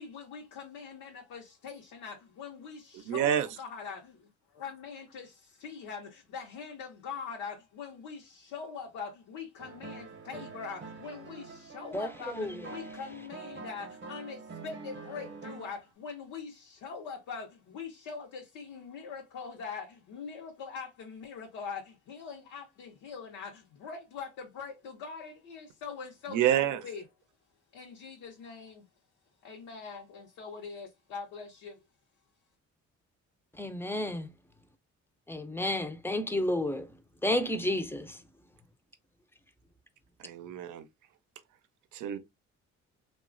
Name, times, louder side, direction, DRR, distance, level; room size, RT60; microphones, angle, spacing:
voice 1, 0.0-27.1 27.7-28.9 29.4-31.8, left 5 dB, 85° left, 0.8 m, -43 dB
voice 2, 2.9-3.5 26.3-26.8 40.2-40.8 41.9-42.2, right 11 dB, 80° right, 0.5 m, -28 dB
sound 1, 9.6-15.9, right 4 dB, 40° right, 0.7 m, -45 dB
voice 3, 11.9-12.7 33.5-34.3 35.3-38.2, left 1 dB, 10° left, 0.4 m, -32 dB
3.0 x 2.3 x 2.4 m
cardioid pair, 90°, 30 cm